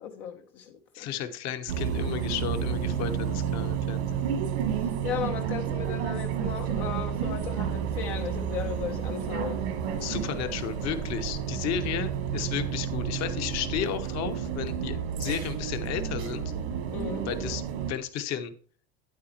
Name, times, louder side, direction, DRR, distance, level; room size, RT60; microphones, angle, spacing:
voice 1, 0.0-1.1 4.8-9.6 16.9-17.3, left 8 dB, 75° left, 0.9 m, -36 dB
voice 2, 0.9-4.3 10.0-16.5 17.2-17.6 17.9-18.5, left 9 dB, 60° left, 1.1 m, -33 dB
sound 1, 1.7-17.9, right 8 dB, 85° right, 1.5 m, -31 dB
8.8 x 8.5 x 3.0 m
supercardioid pair, 100°, 31 cm